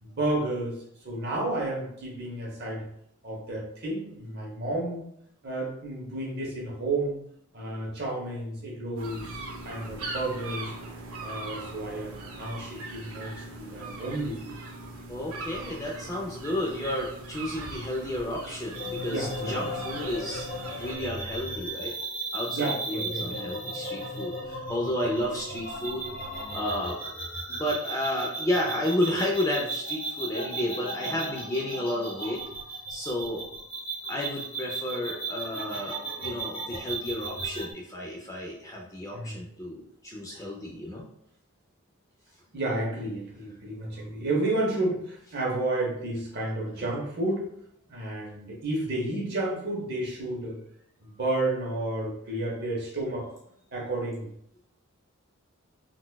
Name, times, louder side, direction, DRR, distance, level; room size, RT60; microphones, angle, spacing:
voice 1, 0.0-2.8 3.2-5.0 5.4-7.2 7.5-10.7 11.2-14.5 19.0-19.6 22.5-23.5 24.0-24.1 39.1-39.4 42.5-47.5 47.9-50.6 51.0-53.3 53.7-54.3, right 2 dB, 45° right, -3 dB, 0.9 m, -31 dB
sound 1, 9.0-21.0, right 2 dB, 85° right, 0.6 m, -40 dB
voice 2, 15.1-20.5 20.8-21.9 22.3-26.1 26.5-27.0 27.5-32.4 32.9-33.4 34.1-41.0 46.8-46.9, left 1 dB, 15° left, -1 dB, 0.4 m, -32 dB
sound 2, 18.7-37.7, right 2 dB, 45° left, 0.9 m, -36 dB
3.9 x 2.3 x 2.2 m, 0.71 s
head